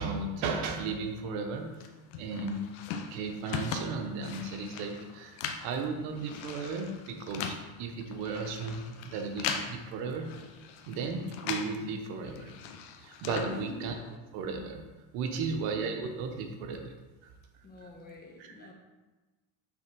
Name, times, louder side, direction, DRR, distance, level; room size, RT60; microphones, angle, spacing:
voice 1, 0.0-1.7 2.1-2.7 3.1-10.3 10.9-12.5 13.0-13.9 14.3-14.8 15.1-16.9 18.4-18.5, right 4 dB, 80° right, 4 dB, 1.1 m, -35 dB
sound 1, 1.8-11.8 12.1-14.2, left 6 dB, 75° left, 0.8 m, -40 dB
voice 2, 13.4-13.8 15.3-15.7 17.6-18.7, left 3 dB, 25° left, 0 dB, 1.2 m, -46 dB
6.4 x 3.6 x 6.0 m, 1.2 s
cardioid pair, 145°, 40 cm